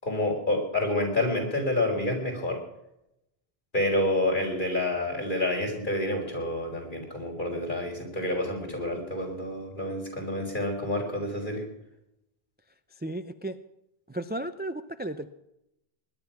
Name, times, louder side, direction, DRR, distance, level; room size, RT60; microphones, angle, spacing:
voice 1, 0.0-2.6 3.7-11.6, left 1 dB, 50° left, 0 dB, 4.6 m, -28 dB
voice 2, 13.0-13.6 14.1-15.3, right 1 dB, 10° right, 10 dB, 0.5 m, -34 dB
20.0 x 11.0 x 5.9 m, 0.84 s
omnidirectional pair, 1.0 m